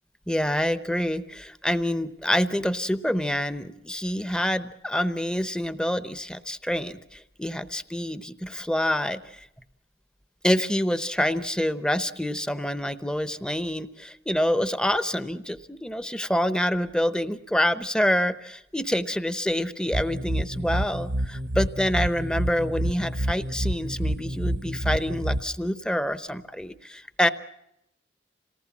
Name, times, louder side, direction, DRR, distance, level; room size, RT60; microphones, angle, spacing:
voice 1, 0.3-9.5 10.4-27.3, equal, 5° left, 12 dB, 0.8 m, -27 dB
sound 1, 19.9-25.4, right 1 dB, 55° right, 0.9 m, -28 dB
27.5 x 18.5 x 7.3 m, 0.84 s
head